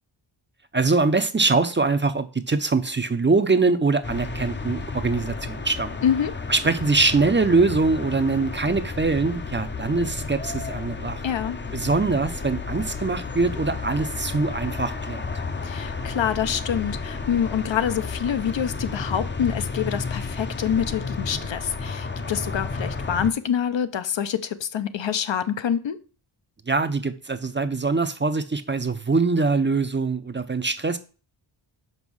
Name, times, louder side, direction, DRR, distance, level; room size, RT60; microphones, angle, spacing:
voice 1, 0.7-5.9 6.5-11.2 11.7-15.2 26.7-31.0, right 3 dB, 25° right, 0.6 m, -23 dB
sound 1, 4.0-23.3, left 4 dB, 25° left, 0.6 m, -32 dB
voice 2, 11.2-11.6 15.6-26.0, left 8 dB, 65° left, 0.8 m, -26 dB
5.5 x 5.1 x 6.3 m
wide cardioid pair, 105°, 48 cm